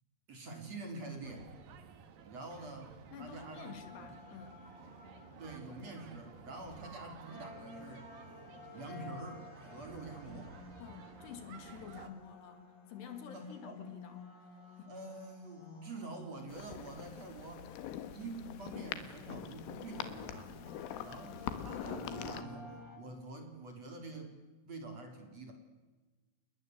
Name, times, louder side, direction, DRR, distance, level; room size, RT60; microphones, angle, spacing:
voice 1, 0.3-1.5 2.2-2.9 3.2-4.1 5.4-8.1 8.7-10.5 13.3-13.9 14.9-17.7 18.1-24.3 24.7-25.5, right 3 dB, 35° right, 4 dB, 4.5 m, -47 dB
sound 1, 1.2-12.1, right 6 dB, 55° right, 3.0 m, -54 dB
voice 2, 3.1-4.6 10.8-14.9, left 8 dB, 65° left, 8 dB, 4.2 m, -50 dB
sound 2, 3.3-23.0, left 4 dB, 45° left, 5.4 m, -53 dB
sound 3, 16.5-22.4, left 10 dB, 90° left, 4.0 m, -44 dB
30.0 x 21.0 x 8.2 m, 1.2 s
omnidirectional pair, 5.5 m